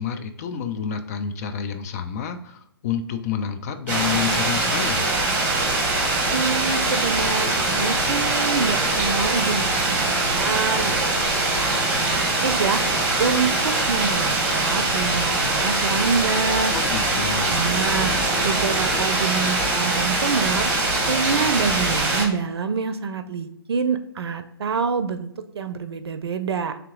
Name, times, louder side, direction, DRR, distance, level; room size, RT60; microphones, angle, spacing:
voice 1, 0.0-5.1 16.7-17.6, left 7 dB, 40° left, 8 dB, 0.4 m, -29 dB
sound 1, 3.9-22.2, right 2 dB, 10° right, 1.2 m, -22 dB
voice 2, 6.3-12.8 13.2-16.7 17.5-18.1 18.4-20.7 21.1-26.8, right 5 dB, 75° right, 10 dB, 0.5 m, -26 dB
sound 2, 7.1-19.0, equal, 15° left, 1.0 m, -39 dB
3.4 x 2.8 x 3.6 m, 0.79 s
hypercardioid pair, 135°, 13 cm